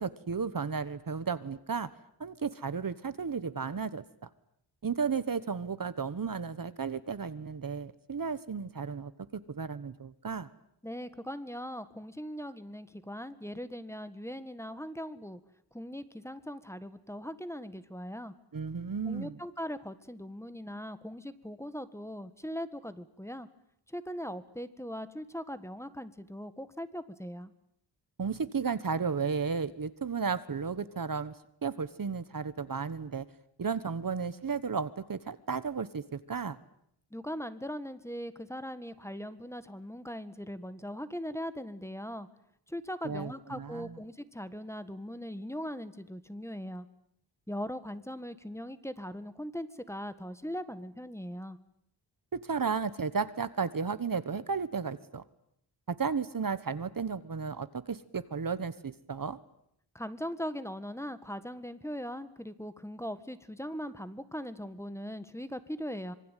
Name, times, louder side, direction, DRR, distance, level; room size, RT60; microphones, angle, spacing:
voice 1, 0.0-1.9 2.2-4.0 4.8-10.5 18.5-19.4 28.2-31.3 31.6-33.2 33.6-36.6 43.0-43.9 52.3-55.2 55.9-59.4, right 5 dB, 45° right, 14 dB, 1.3 m, -34 dB
voice 2, 10.8-15.4 15.7-18.3 19.0-23.5 23.9-27.5 37.1-42.3 42.7-46.9 47.5-51.6 59.9-66.1, equal, 5° left, 12 dB, 1.6 m, -40 dB
26.0 x 23.5 x 9.2 m, 0.73 s
wide cardioid pair, 110°, 45 cm